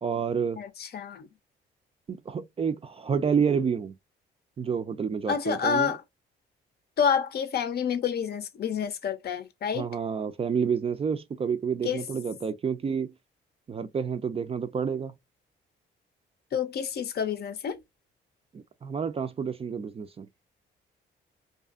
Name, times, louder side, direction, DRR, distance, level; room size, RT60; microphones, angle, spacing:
voice 1, 0.0-0.6 2.1-4.0 4.6-5.9 9.7-13.1 13.7-15.1 18.5-20.3, right 6 dB, 30° right, 0.4 m, -29 dB
voice 2, 0.6-1.3 5.3-6.0 7.0-9.9 11.8-12.1 16.5-17.8, left 7 dB, 55° left, 0.6 m, -28 dB
2.6 x 2.4 x 2.4 m
cardioid pair, 90°, 20 cm